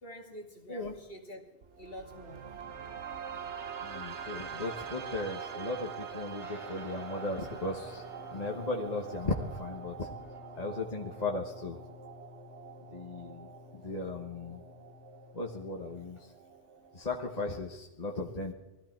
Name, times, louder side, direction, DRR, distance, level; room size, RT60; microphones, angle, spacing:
voice 1, 0.0-1.4 1.8-2.4, equal, 55° left, 2 dB, 2.5 m, -46 dB
sound 1, 1.6-17.6, right 7 dB, 75° right, 1.3 m, -45 dB
voice 2, 3.8-8.0 8.3-10.1 10.5-11.8 12.9-13.5 13.7-14.6 15.3-16.3 16.9-18.5, left 2 dB, 35° left, 1 dB, 1.3 m, -36 dB
Guitar, 6.4-16.2, left 3 dB, ahead, 4.8 m, -52 dB
20.0 x 14.0 x 4.5 m, 1.0 s
omnidirectional pair, 1.2 m